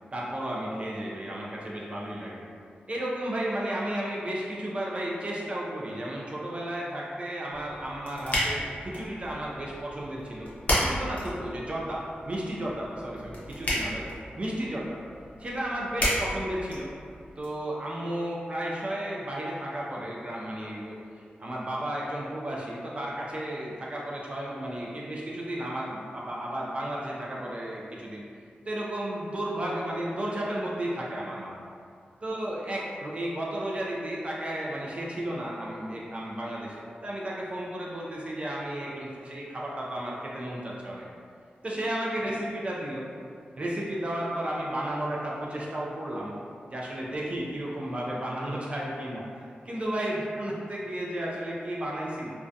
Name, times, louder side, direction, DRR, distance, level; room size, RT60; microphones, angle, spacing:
voice 1, 0.1-2.4 2.9-14.1 14.4-15.0 15.4-16.9 17.4-21.0 21.4-28.2 28.7-31.6 32.2-36.8 37.0-41.0 41.6-43.0 43.6-46.3 46.7-49.2 49.6-52.3, right 1 dB, 35° right, -4 dB, 0.3 m, -33 dB
sound 1, 7.5-17.5, equal, 45° left, 0.6 m, -33 dB
2.4 x 2.1 x 2.6 m, 2.3 s
wide cardioid pair, 145°, 4 cm